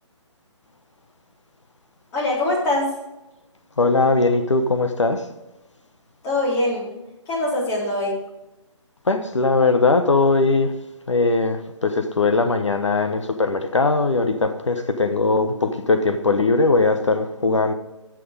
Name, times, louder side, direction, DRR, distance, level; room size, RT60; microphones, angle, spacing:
voice 1, 2.1-2.9 6.2-6.9 7.3-8.2, left 1 dB, 20° left, -5 dB, 3.8 m, -22 dB
voice 2, 3.8-5.2 9.1-10.7 11.1-17.7, left 3 dB, 70° left, 7 dB, 1.1 m, -20 dB
13.5 x 6.4 x 5.2 m, 0.97 s
figure-of-eight pair, 140°, 16 cm